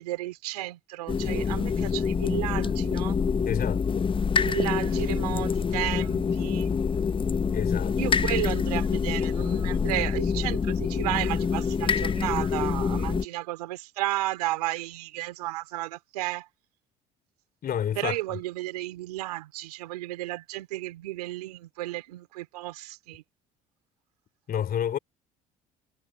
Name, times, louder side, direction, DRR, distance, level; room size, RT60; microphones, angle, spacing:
voice 1, 0.0-3.2 4.4-6.7 8.0-16.5 18.0-23.2, right 17 dB, 85° right, 2.7 m, -33 dB
sound 1, 1.1-13.2, left 6 dB, 25° left, 0.8 m, -26 dB
voice 2, 3.5-4.1 7.5-8.0 17.6-18.1 24.5-25.0, left 9 dB, 50° left, 3.3 m, -29 dB
hypercardioid pair, 60°, 19 cm